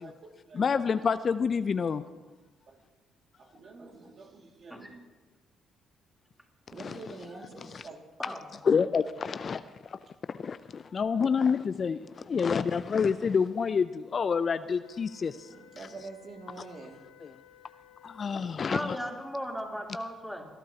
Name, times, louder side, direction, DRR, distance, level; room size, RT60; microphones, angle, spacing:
voice 1, 0.0-0.9 2.7-2.8 3.4-5.0 6.7-8.0 15.5-17.0, right 3 dB, 50° right, 1 dB, 2.3 m, -46 dB
voice 2, 0.5-2.0 6.8-7.0 7.7-7.8 8.6-9.6 10.4-12.0 12.3-15.3 18.0-19.0, left 6 dB, 45° left, 13 dB, 0.4 m, -27 dB
sound 1, 14.8-18.7, left 7 dB, 90° left, 0.9 m, -57 dB
voice 3, 18.7-20.5, equal, ahead, -1 dB, 3.4 m, -36 dB
21.5 x 12.0 x 2.9 m, 1.3 s
hypercardioid pair, 50°, 0 cm